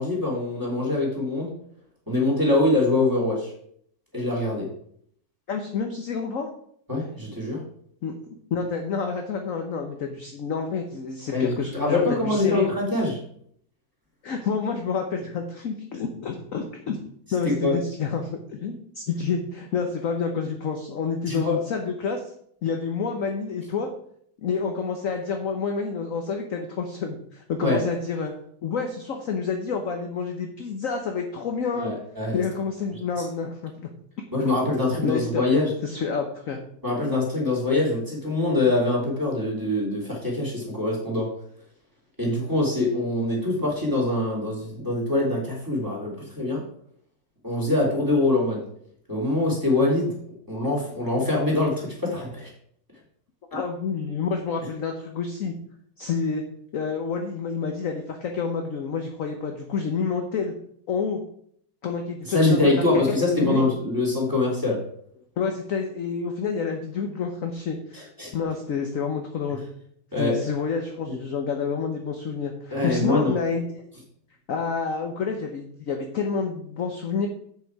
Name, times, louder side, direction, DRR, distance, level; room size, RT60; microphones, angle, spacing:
voice 1, 0.0-1.5 2.1-3.5 4.1-4.7 6.9-7.6 11.3-13.1 17.4-17.7 21.3-21.6 27.6-27.8 31.7-32.4 34.3-35.7 36.8-41.3 42.2-46.6 47.4-48.6 49.1-50.1 50.5-52.5 62.3-64.8 67.9-68.3 70.1-70.3 71.1-71.2 72.7-73.3, left 2 dB, 10° right, -3 dB, 3.1 m, -24 dB
voice 2, 5.5-6.5 8.0-8.1 8.5-12.7 14.2-17.0 17.3-22.3 22.6-23.9 24.4-28.3 28.6-31.9 32.3-33.9 35.0-35.5 35.8-36.6 53.5-55.5 56.0-56.4 56.7-60.5 60.9-61.2 61.8-63.0 63.4-63.7 65.4-69.6 70.2-73.7 74.5-77.3, left 5 dB, 55° left, 4 dB, 1.1 m, -28 dB
8.1 x 6.8 x 4.7 m, 0.66 s
omnidirectional pair, 2.1 m